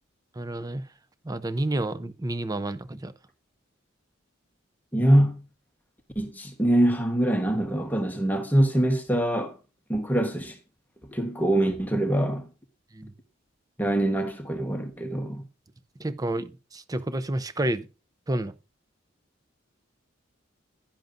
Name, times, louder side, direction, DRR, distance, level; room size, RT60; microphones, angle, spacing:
voice 1, 0.4-0.8 1.2-3.1 12.9-13.1 16.0-17.9 18.3-18.5, right 1 dB, 20° right, 0.5 m, -30 dB
voice 2, 4.9-5.4 6.1-9.6 9.9-10.6 11.1-12.5 13.8-15.4, right 1 dB, 10° left, 1.2 m, -24 dB
11.0 x 10.5 x 2.6 m
head